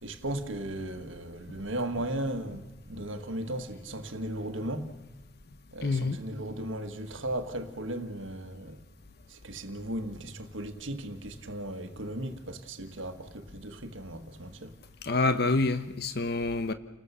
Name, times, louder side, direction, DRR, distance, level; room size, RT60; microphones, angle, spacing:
voice 1, 0.0-4.9 5.7-8.8 9.3-14.7, right 1 dB, 75° right, 1.6 m, -36 dB
voice 2, 5.8-6.2 15.0-16.7, left 3 dB, 55° left, 1.0 m, -27 dB
30.0 x 20.0 x 6.9 m
head